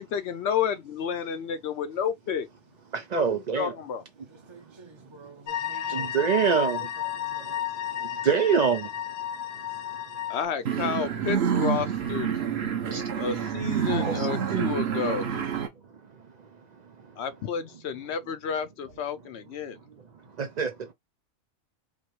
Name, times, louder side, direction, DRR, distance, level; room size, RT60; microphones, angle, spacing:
voice 1, 0.0-2.5 3.1-3.3 3.6-4.0 10.3-12.3 13.2-15.5 17.2-19.8, left 7 dB, 65° left, 0.7 m, -31 dB
voice 2, 2.9-3.7 5.9-6.9 7.9-8.9 12.9-13.0 14.1-14.7 20.4-20.9, right 7 dB, 75° right, 0.4 m, -26 dB
voice 3, 4.2-8.3 9.2-10.4, right 1 dB, 30° right, 0.6 m, -52 dB
sound 1, 5.5-10.4, left 10 dB, 80° left, 1.1 m, -32 dB
sound 2, 10.6-15.7, right 8 dB, 55° right, 0.9 m, -28 dB
5.2 x 2.1 x 3.0 m
omnidirectional pair, 1.4 m